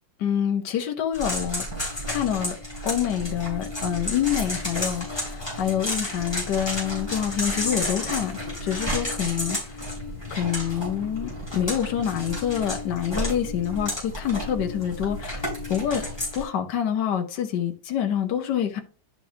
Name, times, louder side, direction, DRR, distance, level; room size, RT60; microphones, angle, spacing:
voice 1, 0.2-1.6 2.1-2.6 2.8-8.3 8.6-9.8 10.3-16.0 16.3-18.8, left 9 dB, 70° left, 1.5 m, -27 dB
sound 1, 1.1-16.4, left 1 dB, 15° left, 3.7 m, -31 dB
10.5 x 4.6 x 2.8 m
omnidirectional pair, 2.0 m